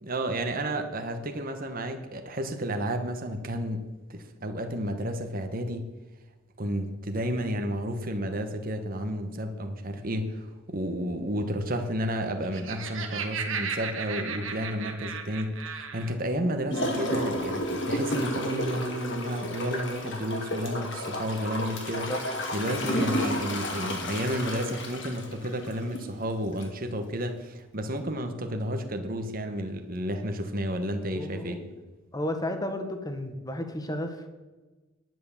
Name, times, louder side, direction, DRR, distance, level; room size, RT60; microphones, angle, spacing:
voice 1, 0.0-5.9 6.6-22.1 22.5-31.6, equal, 45° right, 6 dB, 1.3 m, -31 dB
Laughter, 12.3-16.1, right 6 dB, 85° right, 1.6 m, -35 dB
Gurgling / Toilet flush, 16.7-26.1 26.6-26.7, left 1 dB, 65° left, 2.5 m, -32 dB
voice 2, 31.1-31.7 32.1-34.3, left 1 dB, 20° left, 6 dB, 1.4 m, -33 dB
10.5 x 9.4 x 7.2 m, 1.2 s
head